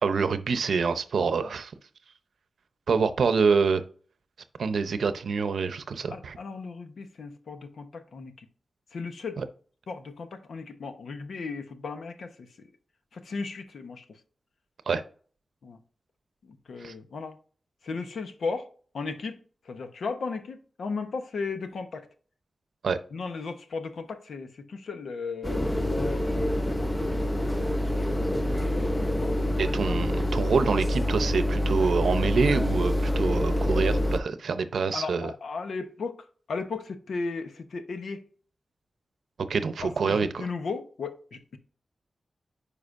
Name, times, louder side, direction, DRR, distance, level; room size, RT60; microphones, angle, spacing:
voice 1, 0.0-1.7 2.9-3.8 4.6-6.4 14.9-15.0 16.8-16.9 22.8-23.0 29.6-35.3 39.5-40.5, right 5 dB, 90° right, 0.7 m, -26 dB
voice 2, 1.2-1.5 6.1-8.5 8.9-9.4 9.9-12.6 13.1-14.2 15.6-15.8 16.4-17.4 17.8-18.7 18.9-19.4 19.6-22.1 23.1-28.1 29.1-29.4 34.9-38.2 39.8-41.6, left 4 dB, 85° left, 0.9 m, -36 dB
sound 1, 25.4-34.2, left 1 dB, 15° left, 0.5 m, -26 dB
9.7 x 5.0 x 2.6 m
wide cardioid pair, 130°, 0 cm